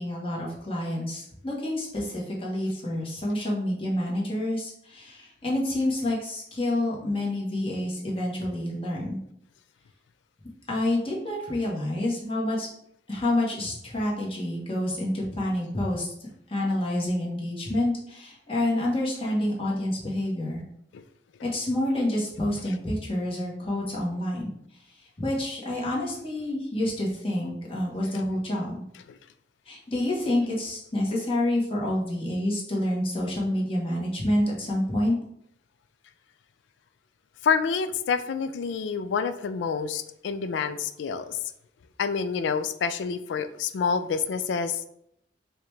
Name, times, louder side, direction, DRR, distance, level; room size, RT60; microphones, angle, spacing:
voice 1, 0.0-9.2 10.7-12.7 13.1-16.1 16.5-20.6 21.4-24.5 25.2-28.8 29.7-35.2, left 1 dB, 30° left, -4 dB, 1.1 m, -28 dB
voice 2, 37.4-41.4 42.0-44.8, left 6 dB, 80° left, 10 dB, 0.3 m, -28 dB
4.7 x 2.3 x 3.2 m, 0.73 s
head